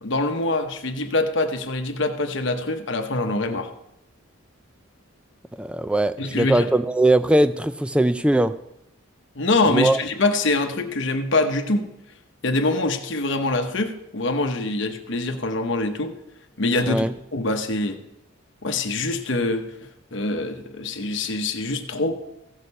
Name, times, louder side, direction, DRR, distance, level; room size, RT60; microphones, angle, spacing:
voice 1, 0.0-3.7 6.2-6.7 9.3-11.9 12.4-16.1 16.6-18.0 18.6-19.7 20.1-22.1, left 2 dB, 55° left, 6 dB, 0.9 m, -24 dB
voice 2, 5.6-8.5 9.7-10.0 16.9-17.1, right 1 dB, 5° right, 13 dB, 0.3 m, -20 dB
15.5 x 6.5 x 5.4 m, 0.85 s
head